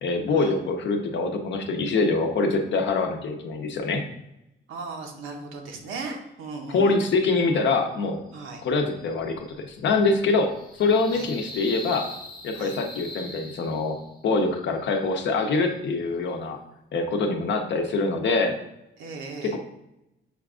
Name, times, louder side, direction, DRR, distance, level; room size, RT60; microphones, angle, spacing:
voice 1, 0.0-4.0 6.7-8.2 8.6-12.1 12.4-14.0 14.2-16.6 16.9-18.5 19.4-19.6, left 3 dB, 65° left, 4 dB, 0.7 m, -24 dB
voice 2, 4.7-6.9 8.3-8.6 11.1-11.2 12.5-12.7 19.0-19.6, right 3 dB, 90° right, 2 dB, 0.8 m, -37 dB
sound 1, 8.3-14.3, left 1 dB, 25° left, 1.0 m, -42 dB
5.8 x 2.4 x 3.6 m, 0.87 s
cardioid pair, 90°, 20 cm